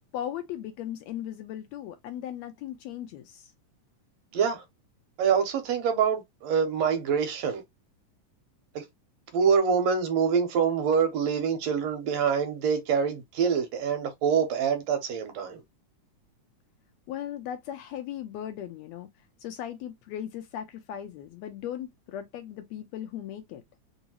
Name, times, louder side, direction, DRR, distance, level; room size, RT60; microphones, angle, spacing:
voice 1, 0.1-3.5 17.1-19.1 19.4-23.6, left 10 dB, 80° left, 1.7 m, -37 dB
voice 2, 4.3-4.6 5.2-7.6 8.8-8.9 9.3-15.6, right 6 dB, 70° right, 1.9 m, -25 dB
4.6 x 2.7 x 2.8 m
omnidirectional pair, 3.4 m